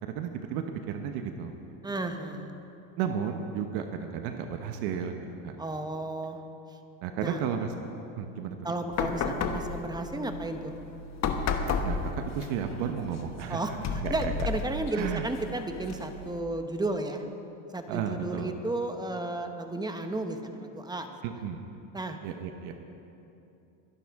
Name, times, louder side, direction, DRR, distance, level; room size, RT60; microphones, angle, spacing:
voice 1, 0.0-1.5 3.0-5.1 5.4-5.6 7.0-7.7 8.2-8.7 11.8-14.5 14.9-15.2 17.9-18.5 21.2-21.6 22.2-22.7, right 8 dB, 75° right, 5 dB, 1.1 m, -33 dB
voice 2, 1.8-2.6 5.6-6.4 7.2-7.4 8.6-10.7 13.5-17.2 17.7-21.2 21.9-22.2, right 2 dB, 10° right, 6 dB, 1.0 m, -33 dB
sound 1, 8.9-16.4, left 5 dB, 45° left, 1.2 m, -33 dB
23.0 x 11.0 x 3.6 m, 2.8 s
supercardioid pair, 110°, 38 cm